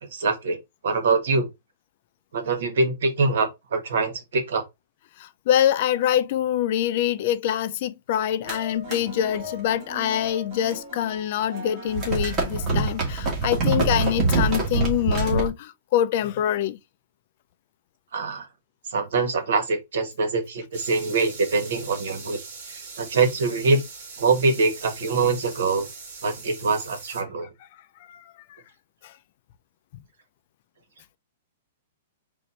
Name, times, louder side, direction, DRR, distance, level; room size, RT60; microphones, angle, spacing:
voice 1, 0.0-1.5 2.3-4.6 18.1-18.5 18.9-22.4 22.7-23.8 24.2-25.9 26.2-27.5, right 4 dB, 70° right, 1.5 m, -24 dB
voice 2, 5.2-16.8 28.1-28.3 29.0-29.1, left 11 dB, 40° left, 0.4 m, -25 dB
sound 1, 8.4-11.1 11.4-15.5, right 3 dB, 20° right, 1.7 m, -26 dB
sound 2, 20.7-27.2, right 4 dB, 50° right, 2.1 m, -41 dB
4.3 x 2.6 x 4.1 m
hypercardioid pair, 170°, 0 cm